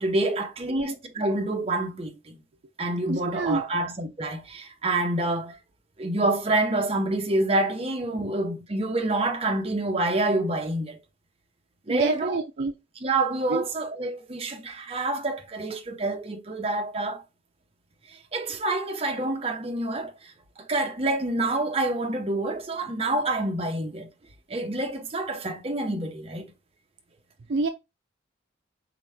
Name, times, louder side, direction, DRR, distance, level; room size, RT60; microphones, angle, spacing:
voice 1, 0.0-2.4 2.8-5.6 6.0-11.0 11.9-12.4 13.0-17.2 18.1-20.3 20.7-24.1 24.5-26.5, right 2 dB, 30° right, 0.7 m, -27 dB
voice 2, 3.1-3.6 8.2-8.3 11.9-12.7 13.5-13.6 27.5-27.7, right 3 dB, 60° right, 0.4 m, -26 dB
4.1 x 3.0 x 3.4 m
head